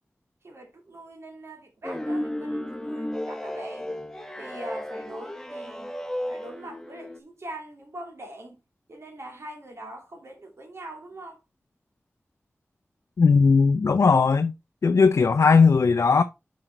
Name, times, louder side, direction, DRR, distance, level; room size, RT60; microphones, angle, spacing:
voice 1, 0.4-3.9 4.4-5.9 6.3-8.6 8.9-11.4, right 1 dB, 65° right, 2.6 m, -42 dB
sound 1, 1.8-7.2, left 1 dB, 10° left, 1.1 m, -33 dB
voice 2, 13.2-14.5 14.8-16.2, left 5 dB, 90° left, 0.5 m, -18 dB
6.0 x 5.1 x 4.3 m
wide cardioid pair, 55°, 5 cm